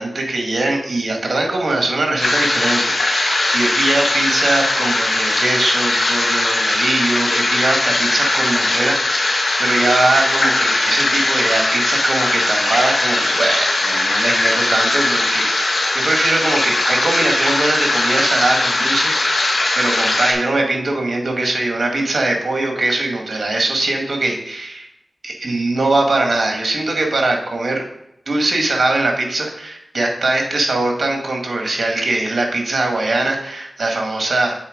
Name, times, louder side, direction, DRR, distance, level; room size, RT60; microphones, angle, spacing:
voice 1, 0.0-19.4 19.8-24.9 25.2-27.8 28.3-34.5, right 2 dB, 65° right, 2 dB, 1.9 m, -21 dB
sound 1, 2.2-20.3, left 2 dB, 80° left, 1.8 m, -19 dB
7.3 x 4.4 x 5.1 m, 0.83 s
cardioid pair, 50°, 0 cm